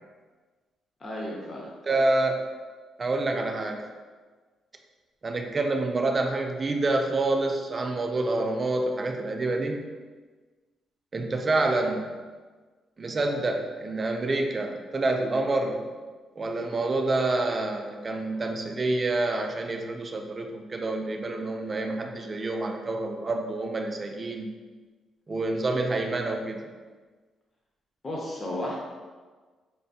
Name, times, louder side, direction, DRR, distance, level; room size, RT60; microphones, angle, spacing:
voice 1, 1.0-1.7 28.0-28.8, left 1 dB, 30° left, -3 dB, 0.5 m, -33 dB
voice 2, 1.8-2.4 3.0-3.8 5.2-9.8 11.1-12.1 13.0-15.8 16.4-24.5 25.3-26.6, right 2 dB, 25° right, 3 dB, 0.3 m, -27 dB
4.3 x 2.3 x 2.6 m, 1.4 s
cardioid pair, 155°, 0 cm